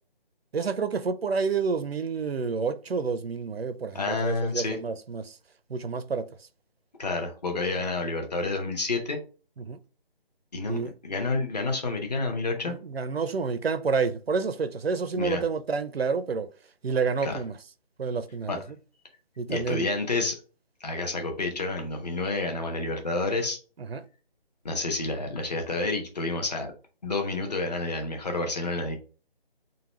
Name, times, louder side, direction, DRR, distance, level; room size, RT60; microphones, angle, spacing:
voice 1, 0.5-5.4 5.7-6.3 9.6-9.8 10.7-10.9 12.6-16.5 16.8-17.5 18.0-18.6 19.4-19.9 23.9-24.0, right 5 dB, 80° right, 0.6 m, -29 dB
voice 2, 3.9-4.8 7.0-9.2 10.5-12.8 15.1-15.4 17.2-17.4 18.5-18.6 19.5-20.4 20.8-23.6 24.6-26.7 27.0-29.0, left 3 dB, 40° left, 1.0 m, -29 dB
3.9 x 2.2 x 4.3 m
figure-of-eight pair, 160°, 30 cm